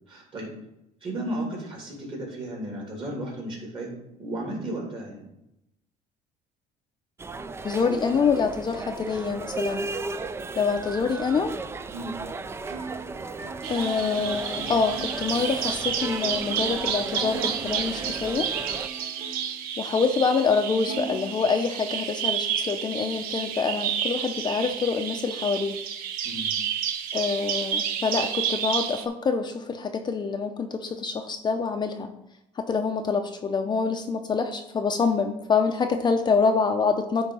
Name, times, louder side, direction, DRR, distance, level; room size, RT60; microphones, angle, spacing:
voice 1, 0.1-0.5 1.0-3.9 4.2-5.2 11.9-12.1 26.2-26.5, right 1 dB, 35° right, -1 dB, 2.8 m, -34 dB
sound 1, 7.2-18.9, right 3 dB, 15° right, 0.3 m, -35 dB
voice 2, 7.6-9.9 10.6-11.6 13.7-18.5 19.8-25.8 27.1-32.1 32.6-37.3, left 5 dB, 30° left, 5 dB, 0.6 m, -26 dB
Plucked string instrument, 12.6-17.6 17.9-19.6 20.1-20.2 20.8-22.0, right 4 dB, 50° right, 0.9 m, -41 dB
Bird vocalization bird call bird song, 13.6-29.1, right 8 dB, 75° right, 0.7 m, -30 dB
9.7 x 3.5 x 5.5 m, 0.84 s
cardioid pair, 125°, 15 cm